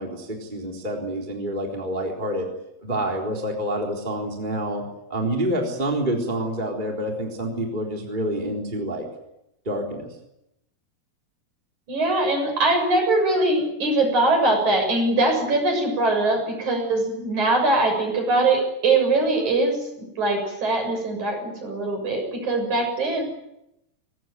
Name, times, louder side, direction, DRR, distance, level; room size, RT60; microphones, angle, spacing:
voice 1, 0.0-2.5 2.8-4.8 5.1-9.0 9.7-10.1, right 1 dB, 10° right, 0 dB, 3.6 m, -27 dB
voice 2, 11.9-19.9 20.2-23.3, right 2 dB, 45° right, 3 dB, 8.4 m, -22 dB
23.5 x 19.5 x 9.4 m, 0.85 s
omnidirectional pair, 4.6 m